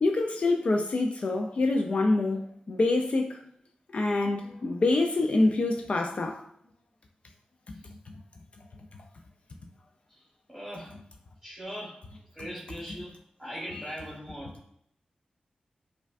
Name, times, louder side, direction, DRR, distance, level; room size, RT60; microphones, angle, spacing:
voice 1, 0.0-3.4 3.9-6.4, left 2 dB, 50° left, 0.4 m, -26 dB
voice 2, 10.1-10.9 11.4-12.0 12.3-14.7, equal, 5° right, 1.0 m, -41 dB
4.8 x 2.2 x 2.4 m
wide cardioid pair, 115°, 3 cm